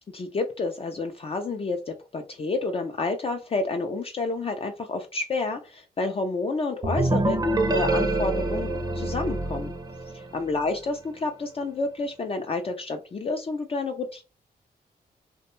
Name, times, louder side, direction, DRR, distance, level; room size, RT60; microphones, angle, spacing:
voice 1, 0.1-7.4 7.7-9.7 10.1-14.2, left 3 dB, 35° left, 4 dB, 0.4 m, -29 dB
sound 1, 6.8-10.5, right 2 dB, 25° right, 0.5 m, -26 dB
2.5 x 2.1 x 3.0 m, 0.31 s
cardioid pair, 85°, 17 cm